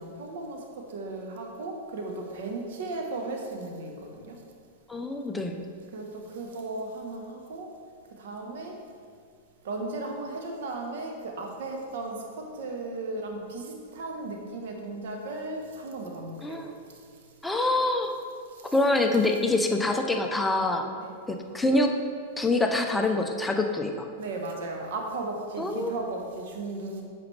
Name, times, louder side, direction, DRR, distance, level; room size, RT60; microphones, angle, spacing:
voice 1, 0.0-4.4 5.9-7.7 8.2-8.8 9.6-16.6 18.5-18.8 21.0-21.2 24.2-27.0, right 2 dB, 70° right, 2 dB, 1.2 m, -36 dB
voice 2, 4.9-5.6 16.4-16.7 17.4-18.2 18.7-20.8 21.3-21.9 22.4-24.1 25.6-25.9, left 2 dB, 5° left, 3 dB, 0.6 m, -25 dB
8.2 x 5.0 x 3.3 m, 2.1 s
hypercardioid pair, 125°, 0 cm